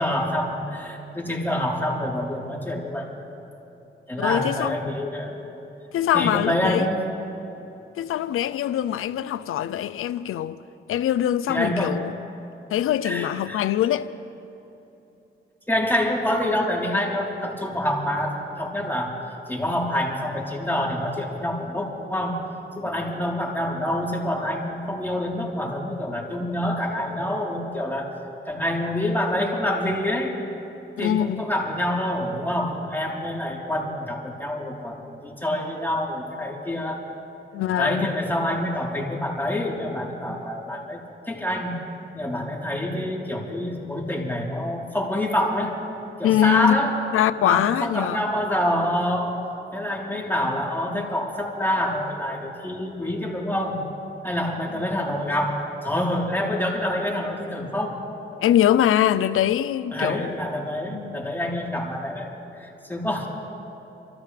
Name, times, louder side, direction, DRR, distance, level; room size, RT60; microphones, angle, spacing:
voice 1, 0.0-3.1 4.1-5.4 6.1-7.0 11.5-12.0 13.0-13.6 15.7-19.1 19.5-22.4 22.8-28.1 28.5-30.4 31.0-37.0 37.8-41.0 41.3-41.8 42.1-45.7 46.2-46.9 47.4-49.4 49.7-53.8 54.2-58.0 59.9-62.3 62.6-63.3, left 1 dB, 10° left, 3.8 m, -26 dB
voice 2, 4.2-4.8 5.9-6.9 8.0-10.6 10.9-12.1 12.7-14.1 31.0-31.4 37.5-38.1 46.2-46.8 47.1-48.2 58.3-60.3 60.9-61.2, left 11 dB, 90° left, 0.5 m, -23 dB
29.0 x 13.5 x 3.4 m
cardioid pair, 50°, 21 cm